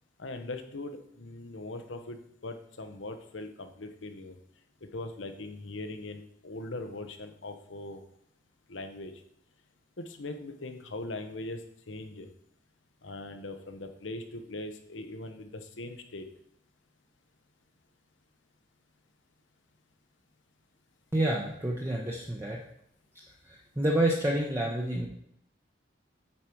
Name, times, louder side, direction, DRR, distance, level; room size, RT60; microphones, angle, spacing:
voice 1, 0.2-4.4 4.8-8.0 8.7-9.1 10.0-11.6 11.9-12.3 13.0-16.3, left 2 dB, 85° left, 6 dB, 1.0 m, -40 dB
voice 2, 21.1-22.6 23.1-25.1, right 1 dB, 15° right, -2 dB, 0.8 m, -29 dB
8.7 x 5.0 x 4.6 m, 0.72 s
head